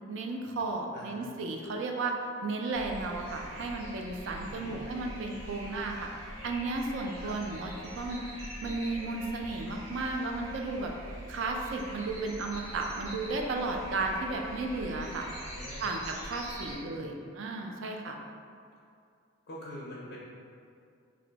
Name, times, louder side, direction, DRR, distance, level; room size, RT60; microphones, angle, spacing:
voice 1, 0.1-2.1 2.4-6.1 6.4-8.2 8.6-10.9 11.3-15.3 15.8-18.2, right 3 dB, 60° right, 2 dB, 0.3 m, -34 dB
sound 1, 2.7-16.7, equal, 90° right, 1.1 m, -44 dB
voice 2, 4.4-4.8 7.2-7.4 15.5-15.9 16.5-17.2 19.5-20.2, left 1 dB, 50° left, -6 dB, 0.4 m, -45 dB
2.5 x 2.1 x 3.8 m, 2.4 s
head